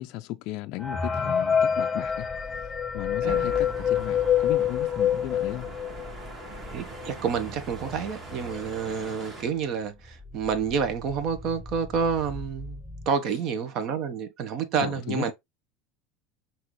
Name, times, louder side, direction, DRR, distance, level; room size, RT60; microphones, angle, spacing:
voice 1, 0.0-2.3 2.6-5.7 14.8-15.3, left 17 dB, 60° left, 0.3 m, -36 dB
sound 1, 0.8-6.2 6.7-6.8 7.0-7.1 7.8-7.9 8.3-8.6, left 8 dB, 20° left, 0.8 m, -26 dB
sound 2, 2.0-13.1, left 1 dB, 5° right, 0.5 m, -43 dB
sound 3, 3.2-9.4, right 3 dB, 30° right, 2.0 m, -43 dB
voice 2, 3.2-3.6 6.7-15.3, right 6 dB, 55° right, 1.2 m, -29 dB
5.8 x 2.9 x 3.1 m
supercardioid pair, 115°, 0 cm